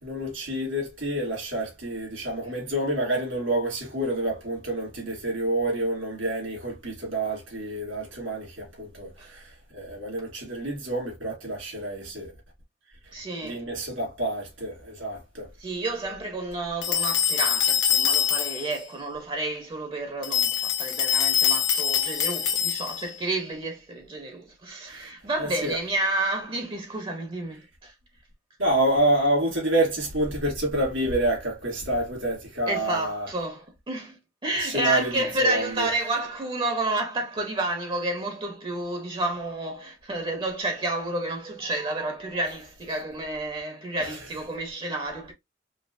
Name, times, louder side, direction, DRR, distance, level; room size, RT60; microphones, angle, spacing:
voice 1, 0.0-9.4 9.7-12.3 13.4-15.5 24.9-25.1 25.4-25.8 28.6-33.3 34.6-35.1 35.4-35.9 44.1-44.2, right 1 dB, 85° right, 2.6 m, -28 dB
voice 2, 13.1-13.6 15.6-27.9 32.7-45.3, right 2 dB, 25° right, 0.6 m, -30 dB
sound 1, 16.8-18.8 20.2-23.1, left 8 dB, 85° left, 0.9 m, -24 dB
5.1 x 2.0 x 2.5 m
head